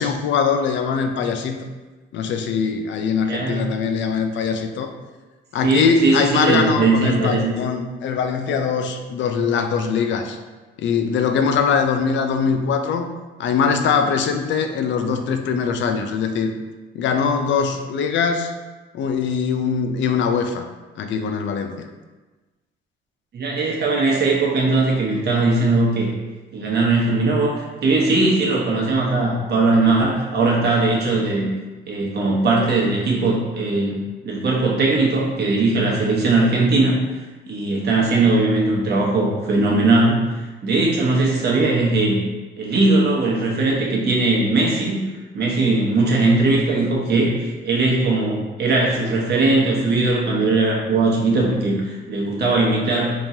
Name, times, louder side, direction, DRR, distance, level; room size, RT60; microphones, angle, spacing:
voice 1, 0.0-1.6 2.1-4.9 5.5-10.4 10.8-13.1 13.4-16.5 16.9-18.5 18.9-20.7 21.0-21.9, left 6 dB, 70° left, 6 dB, 0.4 m, -22 dB
voice 2, 3.2-3.6 5.6-7.5 23.3-26.1 26.5-31.5 31.9-34.0 34.2-37.0 37.5-42.2 42.6-45.0 45.3-53.1, right 3 dB, 55° right, -3 dB, 1.0 m, -19 dB
3.6 x 3.0 x 2.7 m, 1.2 s
cardioid pair, 90°, 20 cm